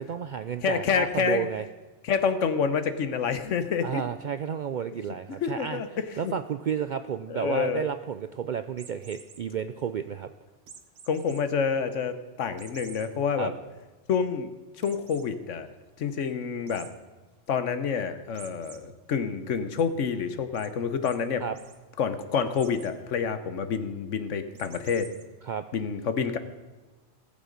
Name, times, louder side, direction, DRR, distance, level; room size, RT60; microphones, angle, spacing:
voice 1, 0.1-1.7 3.8-5.8 6.2-10.3 13.4-13.5 21.4-21.6 25.4-25.6, right 8 dB, 65° right, 10 dB, 0.4 m, -31 dB
voice 2, 0.6-1.5 2.0-4.0 5.4-5.9 6.2-6.3 7.3-7.9 11.1-13.5 14.1-14.5 14.8-15.7 16.0-16.9 17.5-21.4 22.0-25.1 25.7-26.4, left 6 dB, 80° left, 10 dB, 1.3 m, -28 dB
sound 1, 8.8-9.4 10.7-11.4 11.8-11.9 12.6-13.1 13.6-13.7 13.9-14.0 14.8-15.3 16.7-16.9 18.3-18.8 19.2-19.8 20.5-20.7 21.0-21.2 21.4-21.8 22.5-22.9 24.5-25.2, right 6 dB, 80° right, 1.4 m, -48 dB
18.5 x 7.4 x 5.2 m, 1.2 s
omnidirectional pair, 1.3 m